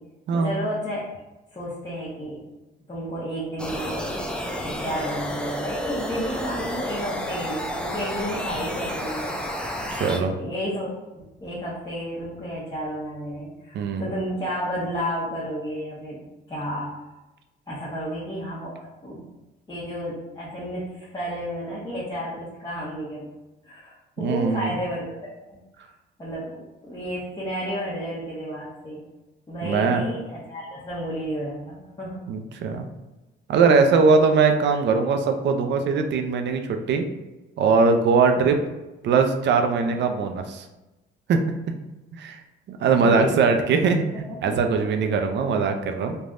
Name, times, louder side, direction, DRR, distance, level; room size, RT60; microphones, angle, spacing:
voice 1, 0.3-1.0 1.5-2.4 2.9-4.1 4.6-9.3 10.3-16.9 17.7-19.2 19.7-23.3 23.6-25.1 25.5-25.6 26.2-26.6 26.8-29.0 29.5-32.2 38.4-38.6 39.8-39.9 43.0-43.4 44.3-44.7, equal, 20° left, -9 dB, 0.9 m, -32 dB
sound 1, 3.6-10.2, equal, 5° left, 0.4 m, -31 dB
voice 2, 9.9-10.4 13.7-14.1 24.2-24.7 29.6-30.0 32.3-32.9 33.5-37.1 37.6-38.6 39.0-40.6 41.3-41.4 42.1-42.4 42.7-46.2, right 5 dB, 65° right, 6 dB, 0.4 m, -21 dB
3.3 x 2.2 x 2.5 m, 1.1 s
cardioid pair, 90°, 20 cm